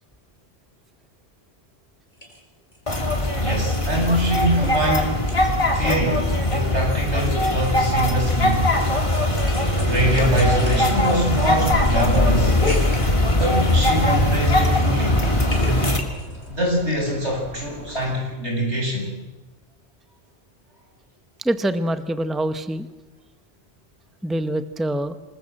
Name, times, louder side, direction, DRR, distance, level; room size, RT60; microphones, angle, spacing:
sound 1, 2.2-2.4 2.7-4.7 5.0-5.8 6.1-14.3 14.6-16.5, left 2 dB, 45° left, 4.8 m, -36 dB
sound 2, 2.9-16.0, left 1 dB, 30° left, 2.7 m, -20 dB
voice 1, 3.3-8.7 9.8-12.6 13.3-15.2 16.5-19.1, right 1 dB, 90° right, 0 dB, 7.9 m, -24 dB
sound 3, 7.4-18.2, left 1 dB, 65° left, 7.0 m, -38 dB
voice 2, 21.4-22.9 24.2-25.2, right 1 dB, ahead, 11 dB, 0.9 m, -25 dB
26.5 x 20.5 x 7.8 m, 1.1 s
omnidirectional pair, 1.1 m